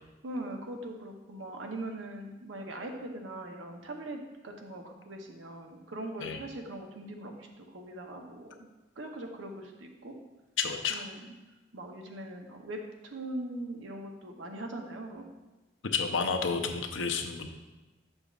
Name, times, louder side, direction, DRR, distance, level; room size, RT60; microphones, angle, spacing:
voice 1, 0.2-8.7 9.0-10.1 10.9-11.2 11.7-15.3, right 1 dB, 85° right, 3 dB, 0.8 m, -41 dB
voice 2, 10.6-11.0 15.9-17.5, left 5 dB, 80° left, 6 dB, 0.6 m, -30 dB
6.8 x 6.6 x 2.4 m, 1.1 s
head